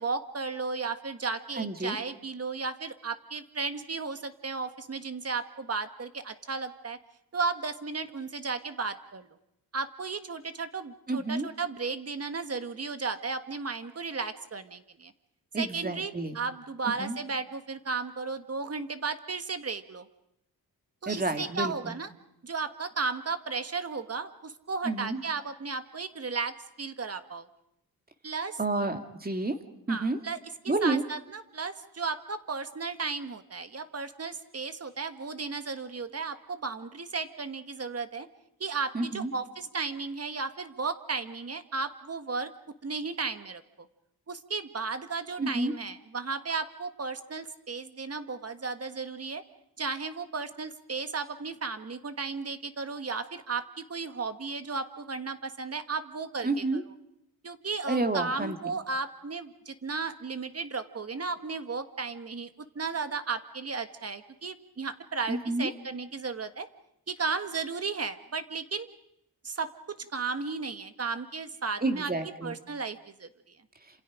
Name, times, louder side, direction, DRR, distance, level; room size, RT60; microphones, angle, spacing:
voice 1, 0.0-7.0 7.3-9.3 9.7-15.1 15.6-20.1 21.0-22.1 22.4-27.5 28.2-28.6 29.9-38.3 38.6-42.5 42.8-43.6 44.3-49.4 49.8-56.8 57.4-62.5 62.7-66.7 67.1-68.9 69.4-72.1 72.4-73.6, right 4 dB, 40° right, 10 dB, 1.5 m, -34 dB
voice 2, 1.6-2.0 11.1-11.5 15.5-16.4 17.0-17.2 21.1-22.0 24.8-25.2 28.6-29.6 29.9-30.2 30.7-31.0 38.9-39.3 45.4-45.7 56.4-56.8 57.9-58.6 65.3-65.7 71.8-72.5, right 2 dB, 25° right, 6 dB, 2.3 m, -29 dB
28.5 x 27.0 x 5.1 m, 0.81 s
wide cardioid pair, 100°, 38 cm